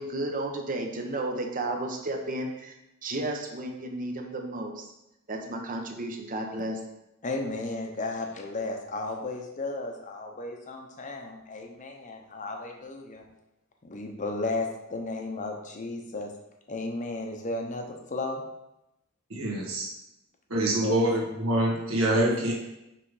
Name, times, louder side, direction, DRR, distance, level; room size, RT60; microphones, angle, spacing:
voice 1, 0.0-2.7 3.0-4.8 5.3-6.8, right 1 dB, 40° right, 3 dB, 0.8 m, -33 dB
voice 2, 7.2-13.2 13.8-16.3 16.7-18.4 20.8-21.1 22.1-22.5, left 2 dB, 35° left, 2 dB, 0.8 m, -34 dB
voice 3, 19.3-19.9 20.5-22.5, right 1 dB, 75° right, -3 dB, 1.5 m, -25 dB
5.9 x 3.3 x 4.8 m, 0.89 s
head